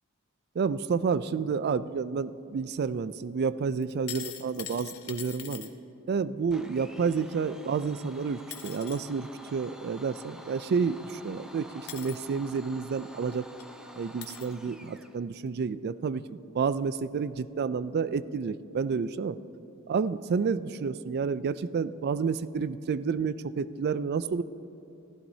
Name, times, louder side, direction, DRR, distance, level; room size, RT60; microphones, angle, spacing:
voice 1, 0.6-5.7 6.1-13.4 14.0-19.4 19.9-24.4, right 5 dB, 50° right, 16 dB, 0.3 m, -30 dB
sound 1, 3.8-5.7 8.0-8.1 8.5-9.0 10.8-10.9 11.9-12.2 13.1-13.2 13.6-13.7 14.2-14.5 15.4-15.5, left 10 dB, 80° left, 1.0 m, -42 dB
Domestic sounds home sounds, 6.5-15.2, equal, 5° right, 0.6 m, -49 dB
15.5 x 14.5 x 2.7 m, 2.9 s
head